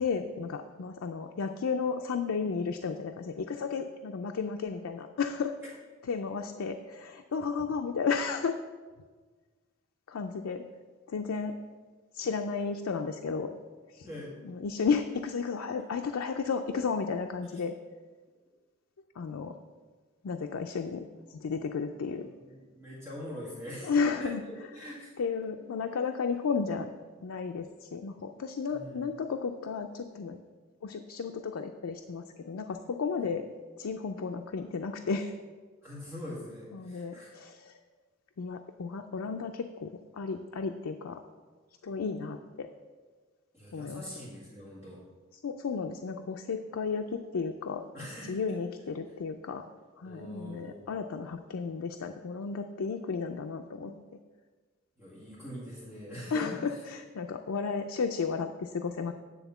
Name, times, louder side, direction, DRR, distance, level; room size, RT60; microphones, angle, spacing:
voice 1, 0.0-5.5 6.0-8.6 10.1-10.6 11.1-11.5 12.1-13.5 13.9-14.1 14.4-17.7 19.2-19.5 20.2-22.3 23.8-24.4 25.2-26.9 27.2-30.4 30.8-33.4 33.8-35.3 36.7-37.8 38.4-41.2 41.8-42.7 43.7-44.1 45.4-47.8 48.3-49.6 50.0-53.9 56.3-59.1, left 5 dB, 80° left, 5 dB, 0.4 m, -33 dB
voice 2, 22.1-25.1 28.7-29.1 35.8-37.3 43.5-45.0 47.9-48.3 50.0-50.8 55.0-56.8, left 1 dB, 10° right, -8 dB, 1.8 m, -43 dB
9.3 x 3.6 x 6.9 m, 1.4 s
head